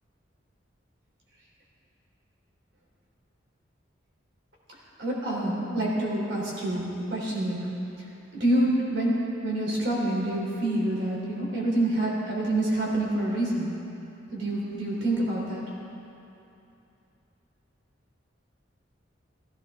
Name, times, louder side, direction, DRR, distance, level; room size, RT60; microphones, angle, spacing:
voice 1, 5.0-7.6 8.3-13.7 14.3-15.7, right 1 dB, 65° right, -4 dB, 3.8 m, -27 dB
16.0 x 16.0 x 3.8 m, 2.8 s
head